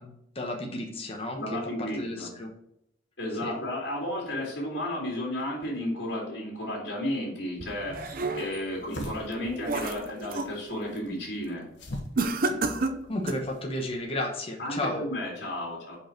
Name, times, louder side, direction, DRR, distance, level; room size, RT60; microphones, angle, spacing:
voice 1, 0.0-2.5 3.4-3.6 12.5-12.6 13.1-15.0, left 1 dB, 35° left, 1 dB, 1.1 m, -33 dB
voice 2, 1.3-2.3 3.2-11.6 14.6-16.0, left 1 dB, 65° left, -4 dB, 2.7 m, -33 dB
sound 1, 7.6-13.9, left 1 dB, 80° left, 1.3 m, -44 dB
sound 2, 7.6-8.7 9.2-10.6 11.0-11.3 12.2-13.5, right 3 dB, 50° right, 0.6 m, -31 dB
5.3 x 5.2 x 4.5 m, 0.80 s
head